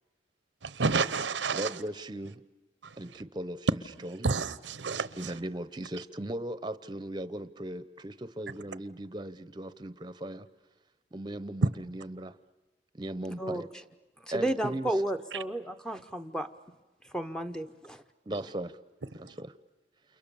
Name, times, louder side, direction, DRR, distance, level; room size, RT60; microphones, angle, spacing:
voice 1, 0.6-1.7 2.8-2.9 4.2-5.3, right 4 dB, 90° right, 0.9 m, -30 dB
voice 2, 1.5-2.4 3.0-4.3 5.2-10.5 11.1-12.3 12.9-13.7 14.3-14.9 18.3-18.8 19.1-19.5, right 1 dB, 25° right, 0.8 m, -38 dB
voice 3, 14.3-16.5 17.1-18.0, right 1 dB, 5° left, 0.9 m, -32 dB
29.5 x 28.5 x 7.0 m
head